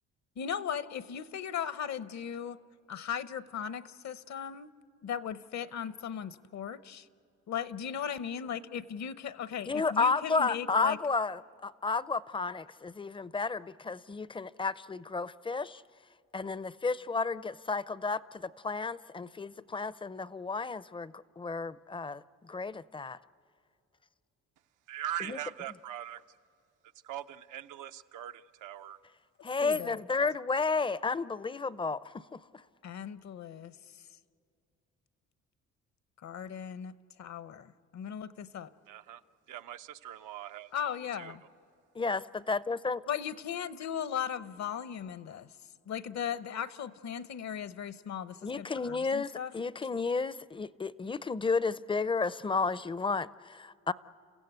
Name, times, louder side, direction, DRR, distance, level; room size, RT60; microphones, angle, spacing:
voice 1, 0.4-2.6 2.9-4.7 5.0-7.1 7.5-11.0 29.6-30.0 32.8-33.8 36.2-36.9 37.2-38.7 40.7-41.4 43.1-45.5 45.9-49.5, left 8 dB, 65° left, 15 dB, 0.9 m, -37 dB
voice 2, 9.7-15.8 16.3-22.2 22.5-23.2 25.3-25.4 29.4-32.4 42.0-43.0 48.4-49.3 49.5-53.9, left 4 dB, 15° left, 18 dB, 0.5 m, -32 dB
voice 3, 24.9-26.2 27.0-29.0 38.9-39.2 39.5-40.7 41.2-41.4, right 11 dB, 85° right, 8 dB, 0.7 m, -41 dB
30.0 x 15.5 x 8.1 m, 2.4 s
cardioid pair, 90°, 30 cm